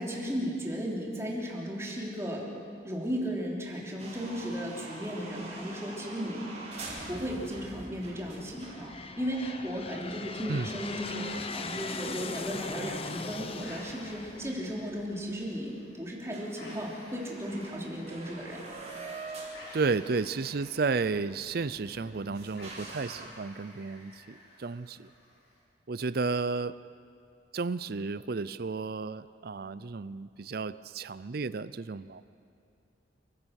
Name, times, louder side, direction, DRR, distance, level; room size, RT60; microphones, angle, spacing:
voice 1, 0.0-2.5 2.8-6.5 7.1-18.7, equal, 15° right, -2 dB, 3.3 m, -35 dB
sound 1, 4.0-12.2 12.4-12.5 13.1-13.2 14.1-14.2 14.4-14.5 15.0-15.1 15.4-15.8 16.1-16.2 16.3-23.3, right 2 dB, 35° right, 5.5 m, -45 dB
Aircraft, 6.6-7.1 7.8-15.4, left 3 dB, 30° left, 0.9 m, -40 dB
sound 2, 13.6-25.6, left 1 dB, 65° left, 6.7 m, -53 dB
voice 2, 19.7-25.1 25.9-26.8 27.5-32.2, right 4 dB, 55° right, 15 dB, 0.5 m, -32 dB
28.5 x 16.0 x 6.5 m, 2.5 s
head